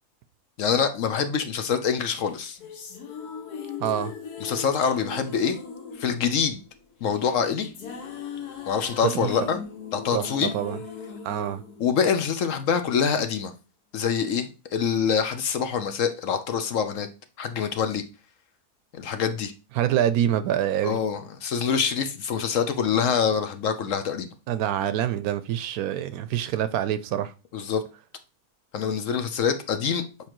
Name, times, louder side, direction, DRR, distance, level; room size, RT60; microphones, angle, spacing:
voice 1, 0.6-2.6 4.4-5.6 6.0-6.6 7.0-7.7 8.6-9.6 9.9-10.5 11.8-13.5 13.9-17.1 17.4-18.0 19.0-19.5 20.8-24.3 27.5-27.8 28.7-30.3, left 7 dB, 60° left, 1.0 m, -25 dB
sound 1, 2.2-12.6, left 5 dB, 85° left, 1.6 m, -39 dB
voice 2, 3.8-4.1 9.1-9.3 10.1-10.8 11.2-11.6 19.8-21.0 24.5-27.3, right 10 dB, 75° right, 1.0 m, -26 dB
7.2 x 4.8 x 3.0 m
omnidirectional pair, 1.6 m